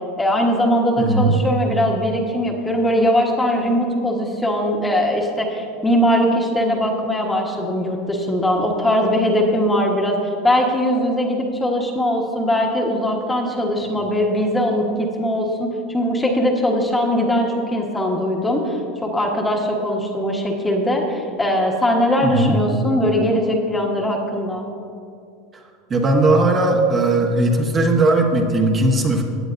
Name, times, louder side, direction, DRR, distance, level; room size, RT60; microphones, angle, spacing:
voice 1, 0.2-10.2 10.4-24.6, equal, 10° left, 0 dB, 1.3 m, -20 dB
voice 2, 1.0-1.4 22.2-22.6 25.9-29.2, right 2 dB, 30° right, 1 dB, 1.2 m, -17 dB
16.0 x 8.9 x 2.6 m, 2.4 s
supercardioid pair, 115°, 0 cm